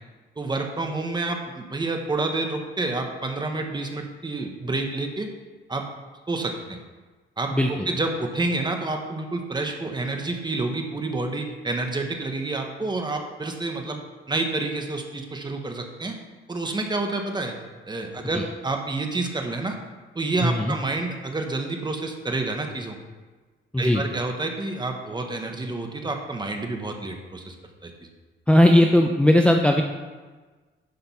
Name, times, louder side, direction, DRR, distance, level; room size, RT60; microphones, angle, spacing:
voice 1, 0.4-5.3 5.7-5.8 6.3-6.8 7.4-14.0 14.3-16.2 16.5-17.5 17.9-19.8 20.1-23.0 23.8-27.6 27.8-27.9, right 2 dB, 20° right, 3 dB, 1.3 m, -29 dB
voice 2, 7.5-7.9 18.3-18.4 20.4-20.7 23.7-24.0 28.5-29.8, left 1 dB, 5° left, 3 dB, 0.6 m, -18 dB
10.5 x 5.2 x 5.6 m, 1.3 s
cardioid pair, 115°, 20 cm